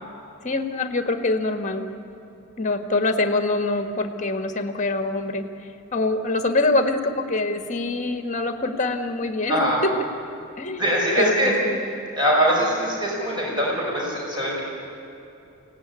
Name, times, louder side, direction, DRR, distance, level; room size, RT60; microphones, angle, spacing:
voice 1, 0.4-1.8 2.6-9.9 10.6-10.8 11.2-11.8, left 2 dB, 35° left, 7 dB, 1.5 m, -24 dB
voice 2, 10.8-11.5 12.2-14.6, equal, 20° right, -3 dB, 5.7 m, -22 dB
24.0 x 17.5 x 9.7 m, 2.8 s
head